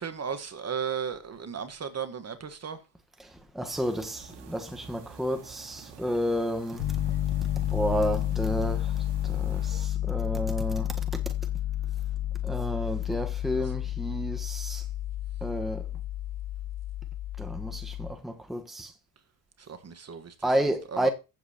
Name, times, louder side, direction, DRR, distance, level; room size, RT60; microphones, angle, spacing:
voice 1, 0.0-2.8 19.6-20.5 20.9-21.1, right 7 dB, 35° right, 1.5 m, -35 dB
voice 2, 3.5-6.8 7.7-8.9 9.2-10.9 12.4-14.8 15.4-15.9 17.4-18.9 20.4-21.1, equal, ahead, 1.3 m, -31 dB
sound 1, 3.6-9.9, right 7 dB, 60° right, 2.4 m, -49 dB
Piano, 6.8-18.1, left 13 dB, 65° left, 1.3 m, -31 dB
15.5 x 7.5 x 3.0 m
supercardioid pair, 80°, 47 cm